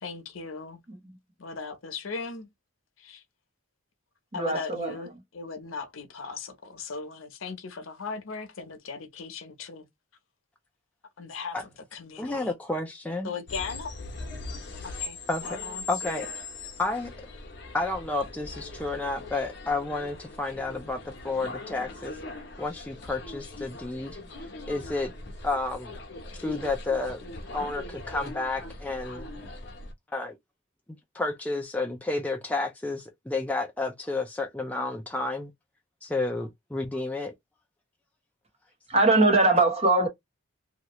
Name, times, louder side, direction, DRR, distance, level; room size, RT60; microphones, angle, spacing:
voice 1, 0.0-0.8 1.4-2.5 3.0-3.2 4.3-9.8 11.2-12.5 13.2-13.9 14.8-15.2 15.4-15.8, left 4 dB, 85° left, 0.8 m, -38 dB
voice 2, 4.3-4.9 38.9-40.1, right 2 dB, 30° right, 0.9 m, -22 dB
voice 3, 12.2-13.3 15.3-15.6 15.9-16.3 16.8-17.1 17.7-22.2 22.6-24.2 24.7-25.1 25.4-26.0 26.4-27.2 27.5-29.3 30.1-30.4 31.1-35.5 36.0-37.3, left 3 dB, 5° left, 0.4 m, -31 dB
sound 1, 13.5-29.9, left 2 dB, 60° left, 0.9 m, -40 dB
2.9 x 2.4 x 2.9 m
head